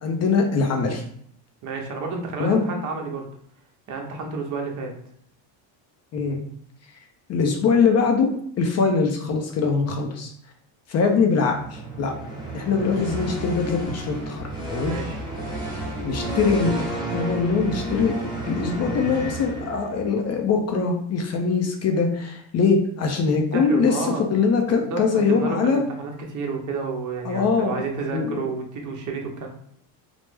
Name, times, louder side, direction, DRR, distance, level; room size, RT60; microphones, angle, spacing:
voice 1, 0.0-1.0 2.4-2.7 6.1-6.4 7.3-8.3 8.6-10.3 10.9-12.1 12.5-15.0 16.0-18.1 18.5-25.8 27.3-27.8 28.1-28.5, left 5 dB, 35° left, 3 dB, 0.4 m, -22 dB
voice 2, 1.6-3.3 3.9-4.9 14.8-15.2 23.5-24.2 24.7-29.5, right 4 dB, 40° right, 1 dB, 0.8 m, -30 dB
sound 1, 11.5-20.2, right 1 dB, 10° right, 1.1 m, -31 dB
3.2 x 2.0 x 3.2 m, 0.65 s
cardioid pair, 125°, 50 cm